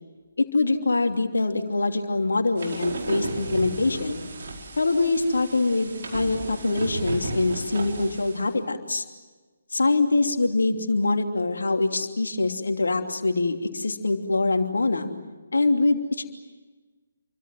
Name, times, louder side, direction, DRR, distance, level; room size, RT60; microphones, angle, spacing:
voice 1, 0.4-4.2 4.8-9.0 9.7-15.1 15.5-16.3, left 3 dB, 65° left, 5 dB, 2.9 m, -24 dB
sound 1, 2.6-8.5, right 2 dB, 50° right, 4.6 m, -34 dB
29.0 x 24.0 x 7.6 m, 1.3 s
figure-of-eight pair, 140°, 0 cm